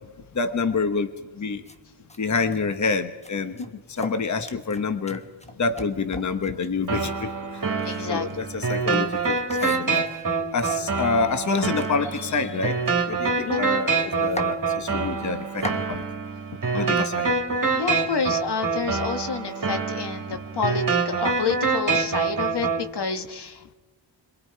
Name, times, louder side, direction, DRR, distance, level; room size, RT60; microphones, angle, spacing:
voice 1, 0.3-1.1 1.4-1.6 2.2-3.6 3.9-5.2 5.6-7.3 8.1-10.0 10.5-12.8 13.1-16.0 16.7-17.3, left 4 dB, 40° left, 8 dB, 1.1 m, -27 dB
sound 1, 1.6-1.8 2.1-2.2 2.5-2.9 3.2-6.8 7.7-10.3 11.0-11.1 11.3-13.4 13.7-13.8 14.0-14.5 15.2-15.8, left 1 dB, 15° left, 1.1 m, -39 dB
sound 2, 6.9-22.9, right 4 dB, 45° right, 2.3 m, -26 dB
voice 2, 7.8-8.3 8.5-8.6 13.4-13.7 16.7-17.0 17.7-23.7, left 5 dB, 60° left, 7 dB, 1.4 m, -29 dB
26.0 x 22.5 x 4.7 m, 1.2 s
wide cardioid pair, 90°, 46 cm